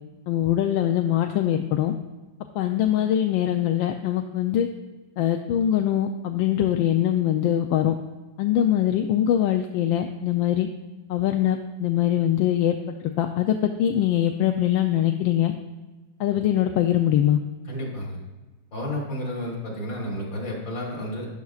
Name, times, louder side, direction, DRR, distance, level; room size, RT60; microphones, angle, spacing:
voice 1, 0.3-1.9 2.6-4.7 5.2-8.0 8.4-10.7 11.1-12.8 13.2-15.5 16.2-17.4, left 11 dB, 90° left, 5 dB, 1.4 m, -22 dB
voice 2, 17.7-18.2 18.7-21.3, left 1 dB, 70° left, -2 dB, 3.5 m, -31 dB
13.0 x 10.5 x 2.4 m, 1.2 s
omnidirectional pair, 2.1 m